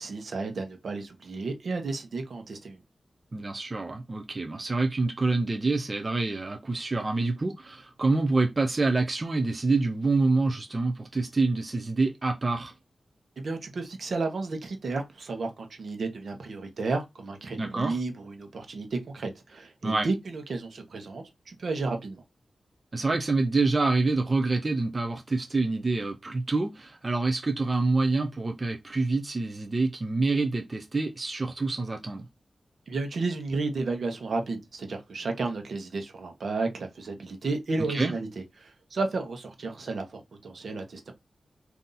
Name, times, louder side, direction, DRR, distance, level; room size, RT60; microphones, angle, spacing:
voice 1, 0.0-2.8 13.4-22.2 32.9-41.1, right 3 dB, 70° right, 1.0 m, -32 dB
voice 2, 3.3-12.7 17.6-18.0 19.8-20.1 22.9-32.3 37.8-38.1, right 3 dB, 35° right, 0.6 m, -27 dB
4.0 x 2.8 x 3.8 m
wide cardioid pair, 105°, 0 cm